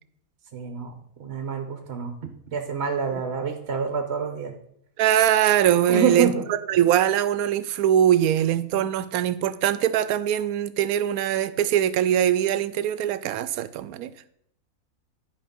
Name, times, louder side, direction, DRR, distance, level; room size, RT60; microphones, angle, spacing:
voice 1, 0.5-0.9 1.2-2.1 2.5-4.5 5.9-6.4, right 6 dB, 50° right, 1.1 m, -27 dB
voice 2, 5.0-14.1, right 10 dB, 80° right, 1.0 m, -22 dB
11.0 x 4.8 x 5.3 m
omnidirectional pair, 1.5 m